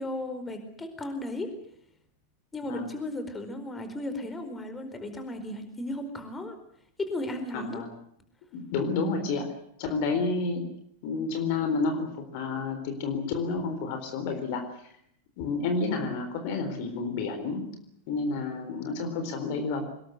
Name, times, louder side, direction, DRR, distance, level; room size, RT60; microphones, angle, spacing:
voice 1, 0.0-1.5 2.5-6.6 7.0-7.8, left 1 dB, 15° left, 8 dB, 4.5 m, -35 dB
voice 2, 7.5-7.9 8.5-9.5 9.8-10.7 11.0-14.6 15.4-17.7 18.1-19.8, left 4 dB, 45° left, 7 dB, 4.0 m, -30 dB
25.0 x 21.0 x 8.1 m, 0.71 s
figure-of-eight pair, 90°, 0 cm